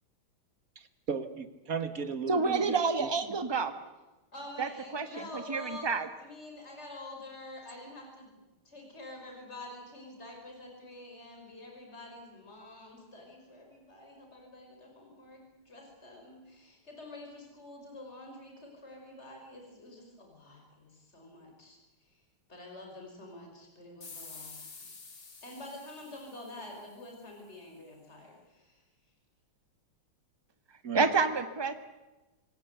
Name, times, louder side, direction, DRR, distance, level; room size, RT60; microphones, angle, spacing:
voice 1, 0.7-3.1 30.8-31.1, right 5 dB, 45° right, 10 dB, 1.8 m, -36 dB
voice 2, 2.3-3.7 4.6-5.0 5.3-6.1 30.9-31.7, right 4 dB, 15° right, 9 dB, 1.3 m, -28 dB
voice 3, 4.3-5.9 6.2-8.4 8.6-22.2 22.5-24.6 25.4-28.8, left 1 dB, 30° left, 1 dB, 5.9 m, -47 dB
sound 1, 24.0-27.3, left 4 dB, 55° left, 3.4 m, -49 dB
26.5 x 18.0 x 8.1 m, 1.1 s
omnidirectional pair, 2.3 m